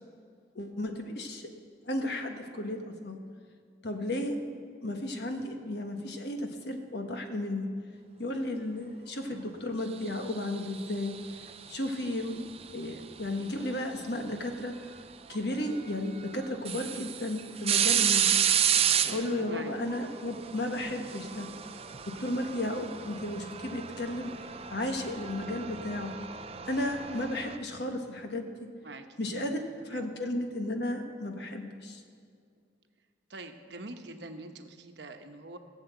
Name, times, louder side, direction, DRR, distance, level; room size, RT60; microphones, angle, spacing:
voice 1, 0.5-1.5 1.8-3.2 3.8-4.4 4.8-7.7 8.2-11.2 11.7-12.4 12.7-14.9 15.3-18.3 19.0-21.5 22.0-24.3 24.7-26.1 26.7-28.5 29.2-29.6 29.9-32.0, left 1 dB, 60° left, 4 dB, 1.5 m, -34 dB
sound 1, 10.3-11.8 13.6-13.7 15.3-15.4 15.9-16.0 16.4-27.6, right 9 dB, 35° right, 0.5 m, -31 dB
voice 2, 28.8-29.6 29.9-30.0 33.3-35.6, right 2 dB, 65° right, 6 dB, 1.1 m, -44 dB
17.5 x 7.1 x 8.1 m, 2.3 s
head